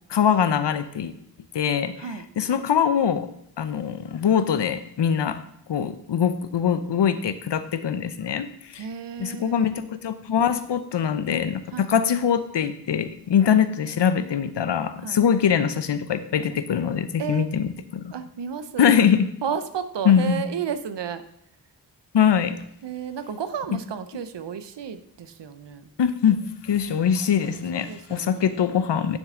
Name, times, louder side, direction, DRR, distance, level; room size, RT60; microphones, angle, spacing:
voice 1, 0.1-1.1 1.5-3.3 3.6-5.4 5.7-8.8 9.2-18.1 18.8-19.2 20.0-20.5 22.1-22.5 26.0-29.2, left 8 dB, 85° left, 12 dB, 0.7 m, -23 dB
voice 2, 8.8-9.7 11.7-11.9 15.0-15.2 17.2-17.5 18.1-19.0 19.4-21.2 22.8-25.9 27.7-28.6, right 7 dB, 85° right, 11 dB, 0.7 m, -32 dB
10.0 x 6.6 x 3.7 m, 0.73 s
wide cardioid pair, 85°, 41 cm